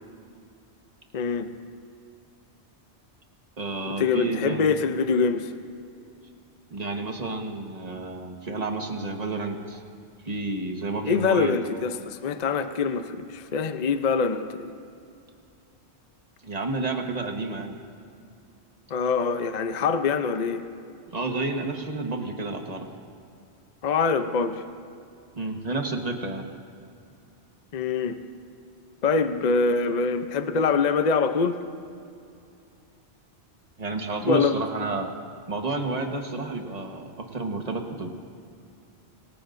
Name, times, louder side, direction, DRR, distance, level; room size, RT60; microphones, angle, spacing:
voice 1, 1.1-1.5 4.0-5.5 11.1-14.7 18.9-20.6 23.8-24.6 27.7-28.2 29.0-31.6 34.2-34.6, left 5 dB, 45° left, 9 dB, 0.7 m, -24 dB
voice 2, 3.6-4.7 6.7-9.8 10.2-11.6 16.4-17.8 21.1-22.9 25.4-26.4 33.8-35.1 35.5-38.1, right 3 dB, 35° right, 3 dB, 1.4 m, -30 dB
26.0 x 19.0 x 2.6 m, 2.5 s
omnidirectional pair, 1.1 m